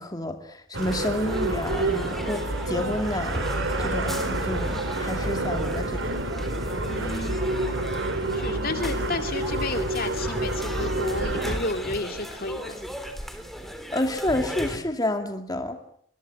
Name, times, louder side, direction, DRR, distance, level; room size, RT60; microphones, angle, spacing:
voice 1, 0.0-3.4 3.8-6.2 13.9-15.8, left 1 dB, 20° left, 5 dB, 2.5 m, -29 dB
sound 1, 0.7-11.6, right 2 dB, 70° right, 2.8 m, -28 dB
sound 2, 0.8-14.8, equal, ahead, 3.4 m, -36 dB
voice 2, 6.9-7.5 8.3-12.6, left 2 dB, 50° left, 6 dB, 2.4 m, -31 dB
25.0 x 22.5 x 7.7 m, 0.62 s
head